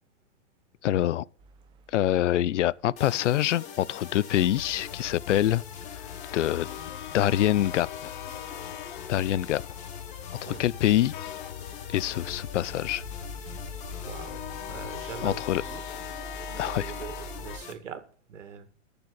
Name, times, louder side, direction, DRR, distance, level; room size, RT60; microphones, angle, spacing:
voice 1, 0.8-1.2 1.9-5.6 6.3-6.7 7.1-8.1 9.1-9.6 10.4-11.1 11.9-13.0 15.2-15.6 16.6-16.9, left 12 dB, 75° left, 0.6 m, -25 dB
sound 1, 1.4-2.9 11.5-17.6, right 3 dB, 15° right, 0.8 m, -46 dB
sound 2, 3.0-17.7, left 7 dB, 20° left, 1.3 m, -44 dB
sound 3, 4.3-17.6, left 10 dB, 40° left, 0.8 m, -41 dB
voice 2, 14.0-15.8 16.5-18.7, right 8 dB, 80° right, 2.2 m, -42 dB
12.0 x 6.9 x 8.6 m
hypercardioid pair, 160°, 36 cm